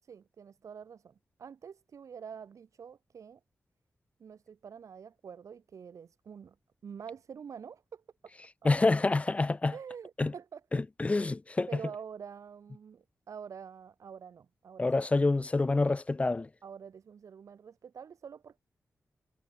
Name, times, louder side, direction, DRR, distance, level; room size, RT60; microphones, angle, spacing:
voice 1, 0.0-3.4 4.2-6.5 6.8-8.3 9.7-10.6 11.7-14.9 16.6-18.6, right 7 dB, 85° right, 5.0 m, -46 dB
voice 2, 8.6-9.8 10.2-10.3 10.7-11.7 14.8-16.5, left 3 dB, 25° left, 1.0 m, -27 dB
wide cardioid pair, 160°, 5 cm